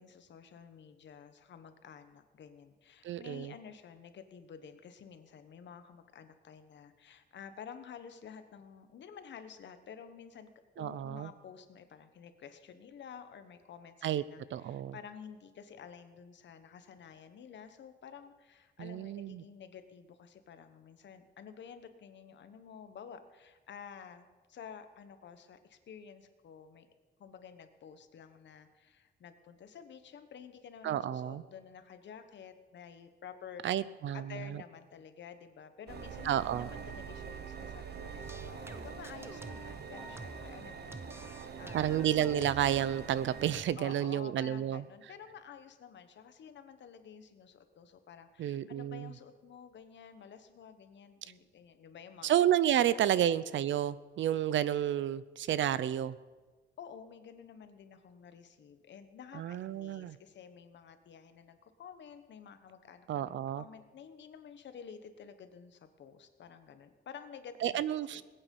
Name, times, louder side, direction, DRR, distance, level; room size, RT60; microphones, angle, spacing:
voice 1, 0.0-10.5 10.8-26.9 27.2-33.6 34.1-42.1 43.8-52.3 52.7-52.9 53.1-53.6 56.8-68.2, left 7 dB, 70° left, 9 dB, 1.1 m, -51 dB
voice 2, 3.0-3.5 10.8-11.3 14.0-14.2 14.5-14.9 18.8-19.4 30.8-31.4 33.6-34.6 36.2-36.7 41.7-44.8 48.4-49.1 52.2-56.2 59.3-60.2 63.1-63.6 67.6-68.2, right 11 dB, 80° right, 17 dB, 0.6 m, -31 dB
sound 1, 35.9-43.6, right 6 dB, 60° right, 1.1 m, -44 dB
sound 2, 38.2-40.6 40.9-42.8 43.5-43.7, right 2 dB, 10° right, 0.6 m, -48 dB
20.0 x 8.9 x 5.4 m, 1.3 s
wide cardioid pair, 160°, 19 cm